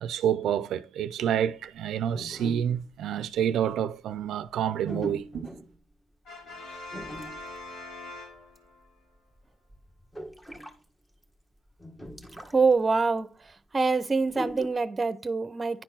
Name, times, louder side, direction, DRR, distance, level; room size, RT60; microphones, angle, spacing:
voice 1, 0.0-5.5, right 9 dB, 75° right, 0.5 m, -28 dB
sound 1, 2.0-3.0 3.5-3.7 4.9-5.8 6.9-7.6 8.4-8.6 8.8-8.9 9.3-10.8 11.2-11.3 11.7-12.7 13.0-13.1 14.3-14.7, equal, 10° left, 1.5 m, -40 dB
Brass instrument, 6.2-8.9, left 2 dB, 70° left, 3.7 m, -42 dB
voice 2, 12.5-13.3 13.7-15.8, right 4 dB, 25° right, 0.8 m, -25 dB
10.5 x 4.4 x 5.8 m
cardioid pair, 90°, 0 cm